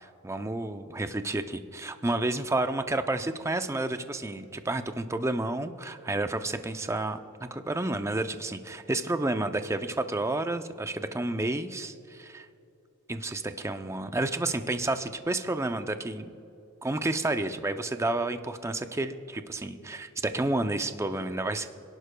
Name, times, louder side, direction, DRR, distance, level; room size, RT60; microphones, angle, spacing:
voice 1, 0.0-12.5 13.1-16.3 16.8-21.7, right 2 dB, 15° right, 8 dB, 0.5 m, -30 dB
27.5 x 11.0 x 2.2 m, 2.9 s
head